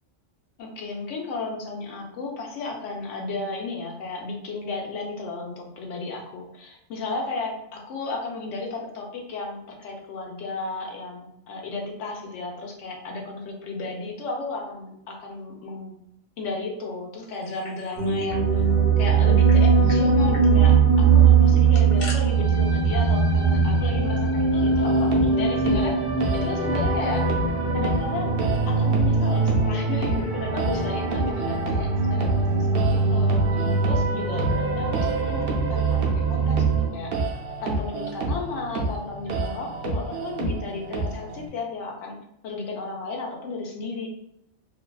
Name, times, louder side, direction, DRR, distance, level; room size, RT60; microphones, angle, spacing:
voice 1, 0.6-15.9 16.4-26.0 26.3-27.3 27.7-28.4 28.7-37.1 37.6-42.2 42.4-44.1, left 3 dB, 80° left, 0 dB, 1.0 m, -34 dB
sound 1, 17.3-18.4 18.7-18.8 19.0-19.6 19.9-20.0 20.3-20.5 21.5-22.2, left 2 dB, 40° left, 0.5 m, -40 dB
sound 2, 18.0-36.9, right 5 dB, 85° right, 1.1 m, -21 dB
sound 3, 24.7-41.5, right 2 dB, 65° right, 0.8 m, -30 dB
2.6 x 2.3 x 2.2 m, 0.78 s
omnidirectional pair, 1.3 m